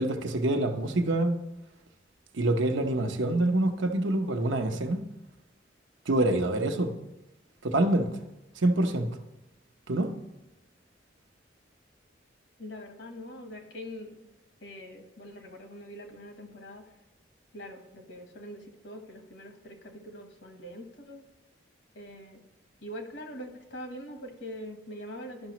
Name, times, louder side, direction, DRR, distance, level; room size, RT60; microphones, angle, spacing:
voice 1, 0.0-1.4 2.3-5.0 6.1-6.9 7.6-8.1 8.6-9.1 9.9-10.1, right 1 dB, 80° right, 0.8 m, -26 dB
voice 2, 12.6-14.3 14.6-16.8 17.5-21.2 21.9-22.4 22.8-25.5, equal, 65° left, 1.2 m, -43 dB
11.5 x 5.7 x 3.0 m
head